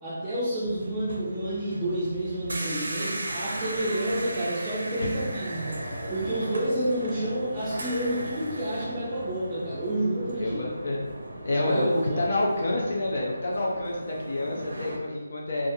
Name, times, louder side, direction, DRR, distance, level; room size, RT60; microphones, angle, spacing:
voice 1, 0.0-10.7 11.5-12.3, right 1 dB, 10° right, -13 dB, 0.5 m, -29 dB
sound 1, 0.6-15.0, right 1 dB, 75° right, 0.4 m, -37 dB
sound 2, 0.8-11.6, equal, 5° left, 1.1 m, -45 dB
voice 2, 10.4-11.0 11.4-15.7, left 2 dB, 60° left, -3 dB, 0.4 m, -28 dB
2.3 x 2.3 x 2.6 m, 1.3 s
figure-of-eight pair, 165°, 0 cm